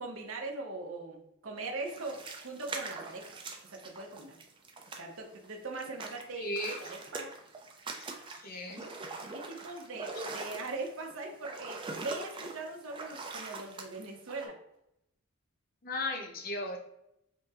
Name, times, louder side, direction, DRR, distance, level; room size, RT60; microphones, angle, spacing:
voice 1, 0.0-3.4 3.7-4.4 5.0-7.3 9.3-14.6, right 3 dB, 65° right, 2 dB, 0.8 m, -41 dB
sound 1, 1.9-5.5 5.7-14.5, right 3 dB, 25° right, 0.4 m, -43 dB
voice 2, 6.4-6.8 8.3-8.9 15.8-16.8, left 1 dB, 45° left, 1 dB, 0.7 m, -36 dB
5.4 x 2.2 x 2.9 m, 0.80 s
head